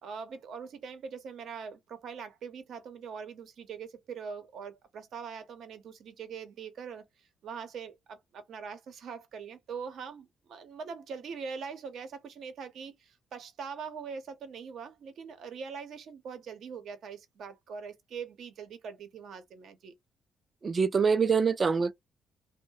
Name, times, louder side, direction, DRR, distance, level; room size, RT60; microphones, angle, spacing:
voice 1, 0.0-19.9, right 6 dB, 70° right, 0.7 m, -42 dB
voice 2, 20.6-21.9, right 5 dB, 35° right, 0.3 m, -25 dB
2.3 x 2.1 x 2.7 m
cardioid pair, 90°, 0 cm